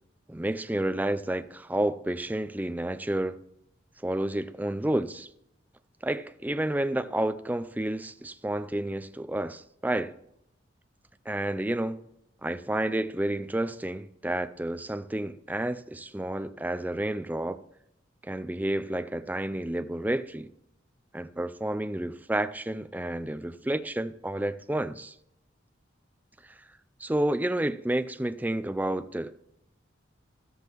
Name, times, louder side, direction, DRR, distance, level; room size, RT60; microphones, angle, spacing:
voice 1, 0.3-3.4 4.0-5.3 6.0-10.2 11.3-12.0 12.4-17.6 18.2-20.5 21.1-25.1 26.4-26.5 27.0-29.3, right 1 dB, 10° right, 0.4 m, -30 dB
13.5 x 13.5 x 3.1 m
head